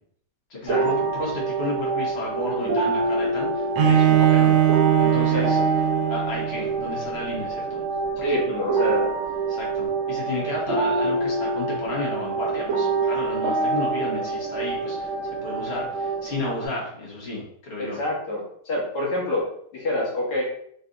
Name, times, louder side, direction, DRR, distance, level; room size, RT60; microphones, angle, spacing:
voice 1, 0.5-4.6 5.0-5.6 6.1-7.8 8.3-8.6 9.5-18.0, left 2 dB, 40° left, -4 dB, 1.3 m, -32 dB
sound 1, 0.7-16.7, right 3 dB, 60° right, 0.8 m, -26 dB
Bowed string instrument, 3.8-6.7, right 10 dB, 85° right, 1.3 m, -20 dB
voice 2, 5.3-5.6 8.2-9.2 17.8-19.5 19.7-20.4, left 1 dB, 65° left, -4 dB, 1.6 m, -27 dB
3.9 x 3.2 x 2.5 m, 0.66 s
omnidirectional pair, 1.9 m